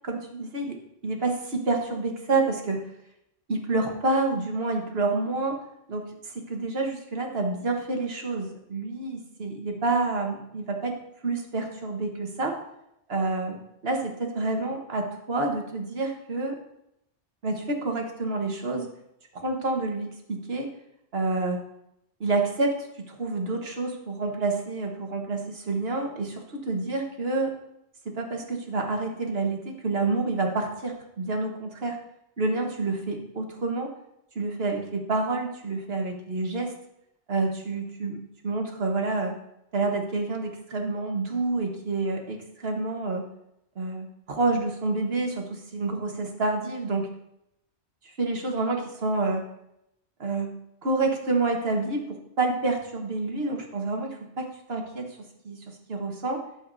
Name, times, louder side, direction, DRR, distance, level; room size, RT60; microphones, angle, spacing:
voice 1, 0.0-0.8 1.0-2.8 3.5-5.6 5.9-11.0 11.2-12.5 13.1-13.6 13.8-16.6 17.4-18.9 19.3-20.7 21.1-21.6 22.2-27.5 28.2-32.0 32.4-33.9 34.3-36.7 37.3-38.2 38.4-39.3 39.7-43.2 43.7-47.1 48.0-49.4 50.2-50.5 50.8-55.1 55.4-55.6 55.9-56.4, right 3 dB, 60° right, 2 dB, 1.5 m, -28 dB
12.0 x 7.2 x 2.7 m, 0.80 s
omnidirectional pair, 1.2 m